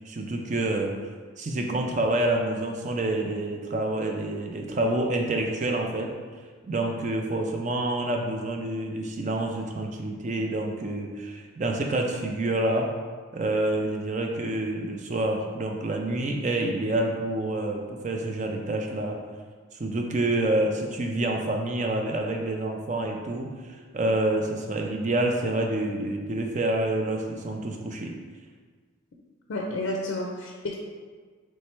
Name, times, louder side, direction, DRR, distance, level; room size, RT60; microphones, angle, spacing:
voice 1, 0.1-0.9 1.4-6.1 6.6-12.9 13.3-19.2 19.8-23.5 23.9-28.1, right 2 dB, 35° right, 2 dB, 0.4 m, -27 dB
voice 2, 29.5-30.7, left 1 dB, 60° left, 0 dB, 0.4 m, -30 dB
3.2 x 3.2 x 4.4 m, 1.5 s
head